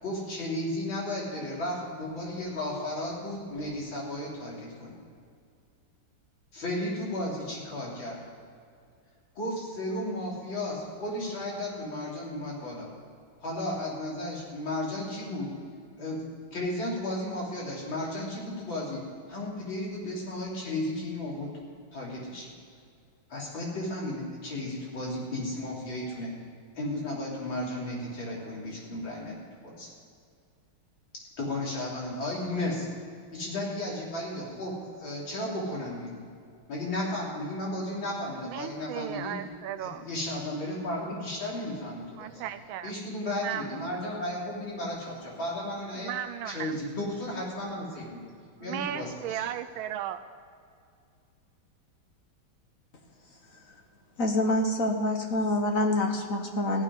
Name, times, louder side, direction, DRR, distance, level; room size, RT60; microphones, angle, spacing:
voice 1, 0.0-4.9 6.5-8.2 9.4-12.9 13.4-15.5 16.0-16.2 16.5-19.0 19.3-21.5 21.9-22.5 23.3-26.3 26.8-29.9 31.4-32.9 33.3-36.2 36.7-39.4 39.8-42.4 42.8-46.1 46.5-48.2 48.6-49.4, left 1 dB, 70° left, -5 dB, 4.1 m, -34 dB
voice 2, 38.4-40.0 42.2-42.9 43.4-44.0 45.9-46.8 48.6-50.2, right 11 dB, 85° right, 10 dB, 1.4 m, -36 dB
voice 3, 54.2-56.8, left 1 dB, 45° left, 3 dB, 1.4 m, -26 dB
16.5 x 6.3 x 9.6 m, 2.3 s
omnidirectional pair, 2.2 m